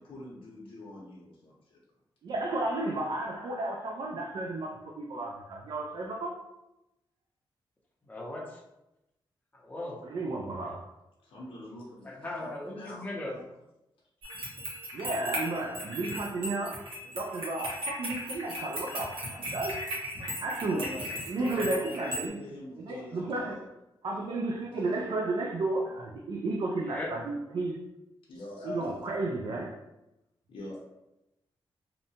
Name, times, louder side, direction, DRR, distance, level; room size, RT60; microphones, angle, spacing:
voice 1, 0.0-1.8 11.2-13.5 20.6-23.7 24.7-25.0 28.3-28.9 30.5-30.8, left 1 dB, 75° left, -5 dB, 0.6 m, -44 dB
voice 2, 2.2-6.4 10.1-10.9 14.9-19.8 20.2-20.9 21.3-22.4 22.8-23.6 24.0-27.8 28.6-29.8, right 2 dB, 55° right, -1 dB, 0.3 m, -33 dB
voice 3, 8.1-8.6 9.5-10.0 12.0-13.4 26.9-27.1, left 1 dB, 20° left, -2 dB, 0.6 m, -38 dB
sound 1, 14.2-22.3, equal, 80° right, 0.9 m, -37 dB
2.7 x 2.1 x 2.7 m, 0.92 s
wide cardioid pair, 130°, 9 cm